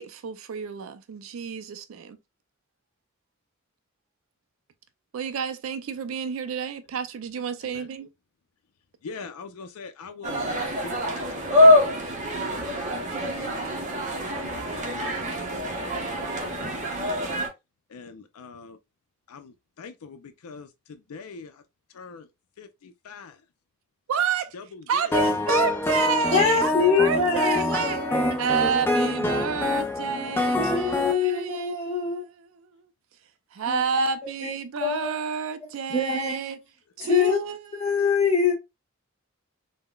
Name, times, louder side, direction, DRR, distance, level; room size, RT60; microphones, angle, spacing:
voice 1, 0.0-2.2 5.1-8.1 24.1-24.6 24.9-28.0 28.4-32.9 33.5-36.6 37.0-37.6 37.8-38.4, right 7 dB, 65° right, 0.3 m, -30 dB
voice 2, 9.0-11.9 12.4-12.8 13.2-17.0 17.9-18.8 19.3-21.6 21.9-22.3 22.6-23.4 24.5-25.2 25.9-26.1 27.1-27.4, left 4 dB, 90° left, 0.4 m, -44 dB
sound 1, 10.2-17.5, left 1 dB, 35° right, 0.7 m, -24 dB
sound 2, 25.1-31.1, left 2 dB, 10° left, 0.3 m, -26 dB
voice 3, 26.3-29.5 30.6-32.3 33.7-35.1 35.9-36.4 37.0-37.4 37.7-38.5, left 5 dB, 30° left, 1.0 m, -25 dB
3.7 x 2.1 x 2.2 m
head